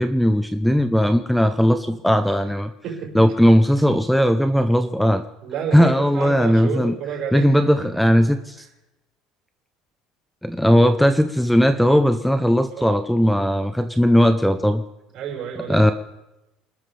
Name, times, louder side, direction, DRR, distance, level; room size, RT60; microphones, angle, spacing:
voice 1, 0.0-2.7 3.1-5.2 5.7-6.9 7.3-8.6 10.4-14.8 15.7-15.9, equal, ahead, 10 dB, 0.7 m, -18 dB
voice 2, 2.8-3.2 5.4-7.5 7.8-7.9 12.8-13.0 15.1-15.9, right 6 dB, 50° right, 0 dB, 5.5 m, -30 dB
28.0 x 13.0 x 3.4 m, 0.96 s
cardioid pair, 145°, 0 cm